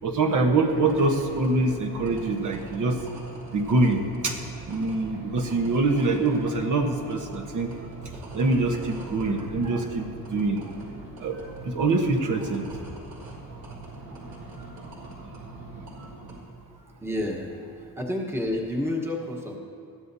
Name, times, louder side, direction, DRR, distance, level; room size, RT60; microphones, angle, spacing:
voice 1, 0.0-3.0 3.5-4.4 4.7-7.7 8.3-10.7 11.2-12.7, right 2 dB, 55° right, 1 dB, 1.2 m, -24 dB
sound 1, 0.6-16.4, right 2 dB, 70° right, 3.6 m, -42 dB
voice 2, 17.0-17.5 18.0-19.6, left 1 dB, 5° right, -2 dB, 1.2 m, -29 dB
21.0 x 15.0 x 2.7 m, 2.6 s
wide cardioid pair, 170°, 38 cm